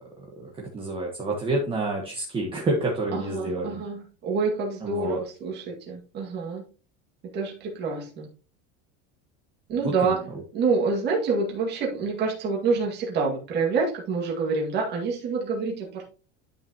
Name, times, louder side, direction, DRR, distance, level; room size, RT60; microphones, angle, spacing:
voice 1, 0.2-3.8 4.8-5.2 9.8-10.1, right 2 dB, 15° right, -1 dB, 1.3 m, -28 dB
voice 2, 3.1-6.6 7.3-8.3 9.7-10.2 10.5-16.1, right 4 dB, 30° right, -2 dB, 2.1 m, -27 dB
10.5 x 5.9 x 2.9 m, 0.37 s
cardioid pair, 170°, 32 cm